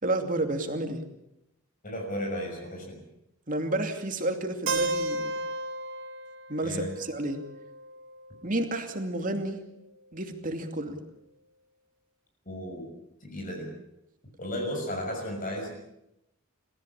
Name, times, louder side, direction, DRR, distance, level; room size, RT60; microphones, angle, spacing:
voice 1, 0.0-1.0 3.5-5.3 6.5-7.4 8.4-9.6 10.1-11.0, right 1 dB, 40° right, 5 dB, 2.6 m, -30 dB
voice 2, 1.8-3.0 6.6-6.9 12.4-12.9 13.2-13.7 14.4-15.7, equal, 40° left, 1 dB, 6.1 m, -34 dB
Keyboard (musical), 4.7-8.6, right 2 dB, 80° right, 2.3 m, -34 dB
27.5 x 15.0 x 8.8 m, 0.86 s
head